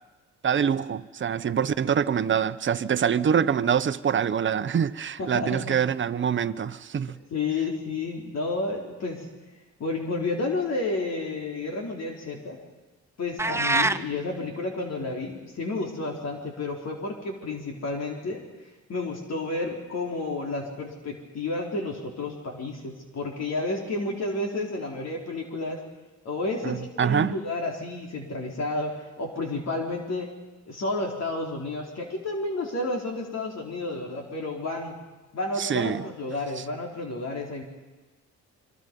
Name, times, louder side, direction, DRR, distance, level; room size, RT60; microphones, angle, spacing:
voice 1, 0.4-7.2 26.6-27.4 35.6-36.0, right 8 dB, 40° right, 1.0 m, -25 dB
voice 2, 5.2-5.8 7.3-9.3 9.8-12.6 13.2-18.4 18.9-25.8 26.2-28.9 29.2-30.3 30.7-34.9 35.3-37.6, left 2 dB, 60° left, 4.1 m, -31 dB
sound 1, 13.4-14.0, right 2 dB, 10° right, 0.7 m, -23 dB
26.5 x 24.5 x 5.4 m
cardioid pair, 90°, 30 cm